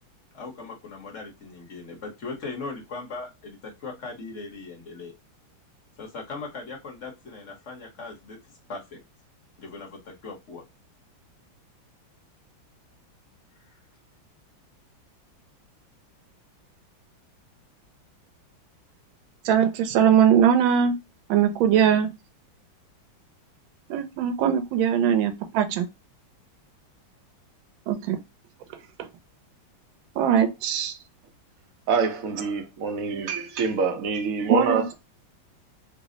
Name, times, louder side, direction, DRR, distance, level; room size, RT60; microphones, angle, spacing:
voice 1, 0.3-5.1 6.0-8.4 8.7-9.0 9.6-10.6 13.6-13.8, left 3 dB, 50° left, 1.0 m, -39 dB
voice 2, 19.4-21.0 21.3-22.2 23.9-25.9 27.9-28.2 29.0-29.1 30.2-31.0 34.5-34.9, right 8 dB, 85° right, 1.4 m, -21 dB
voice 3, 31.9-34.9, right 4 dB, 65° right, 0.9 m, -26 dB
3.3 x 2.0 x 3.6 m
omnidirectional pair, 2.2 m